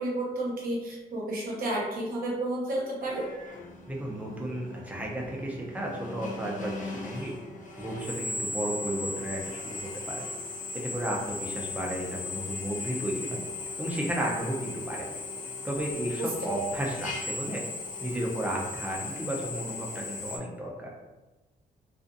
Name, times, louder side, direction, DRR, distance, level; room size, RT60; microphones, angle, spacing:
voice 1, 0.0-3.3 16.2-16.3, right 1 dB, 60° right, -3 dB, 0.9 m, -31 dB
Drill, 3.0-20.4, left 3 dB, 50° left, 0.6 m, -38 dB
voice 2, 3.9-7.3 7.8-10.2 10.7-13.4 13.8-15.1 15.6-17.6 18.0-20.9, right 1 dB, 10° right, -2 dB, 0.6 m, -33 dB
2.4 x 2.4 x 2.5 m, 1.1 s
cardioid pair, 100°, 17 cm